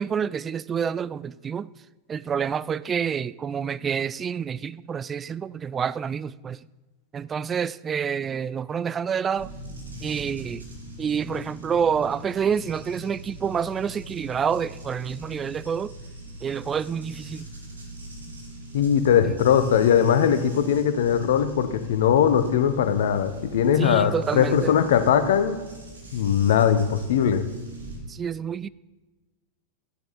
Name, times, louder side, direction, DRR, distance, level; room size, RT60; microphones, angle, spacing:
voice 1, 0.0-1.7 2.1-6.6 7.1-9.5 10.0-10.6 11.0-15.9 16.4-17.5 19.2-19.4 23.8-24.7 28.1-28.7, right 7 dB, 20° right, 0.3 m, -28 dB
sound 1, 9.4-28.0, right 1 dB, 75° right, 2.7 m, -42 dB
voice 2, 18.7-25.6 26.1-27.4, left 8 dB, 60° left, 1.0 m, -20 dB
13.0 x 11.0 x 4.2 m
figure-of-eight pair, 90°, 0 cm